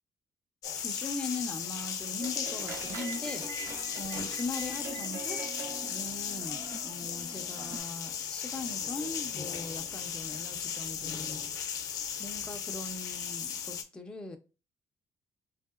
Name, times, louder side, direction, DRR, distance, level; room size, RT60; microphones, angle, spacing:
sound 1, 0.6-13.8, left 7 dB, 70° left, 0.5 m, -36 dB
voice 1, 0.7-5.4 5.8-11.4 12.2-14.4, left 3 dB, 15° left, 0.4 m, -40 dB
sound 2, 2.2-7.8, right 3 dB, 50° right, 1.0 m, -43 dB
3.1 x 2.7 x 2.3 m
cardioid pair, 170°, 7 cm